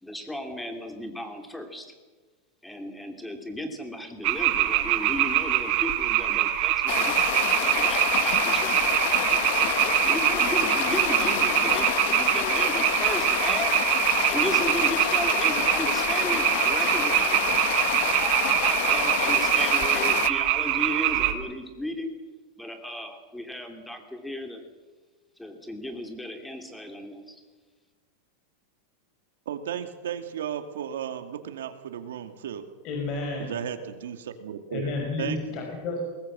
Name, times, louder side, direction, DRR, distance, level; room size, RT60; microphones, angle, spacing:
voice 1, 0.0-1.8 2.6-8.8 9.3-13.7 14.3-17.5 18.2-22.1 22.6-24.6 25.4-27.4, left 1 dB, 5° left, 5 dB, 3.0 m, -35 dB
sound 1, 4.2-21.3, right 14 dB, 45° right, 2.3 m, -24 dB
sound 2, 6.9-20.3, left 17 dB, 60° left, 0.7 m, -28 dB
voice 2, 29.5-32.6 33.4-35.7, right 9 dB, 90° right, 8 dB, 2.4 m, -35 dB
voice 3, 32.8-33.5 34.7-36.0, left 3 dB, 45° left, 1 dB, 5.6 m, -31 dB
22.0 x 19.0 x 7.6 m, 1.3 s
supercardioid pair, 145°, 0 cm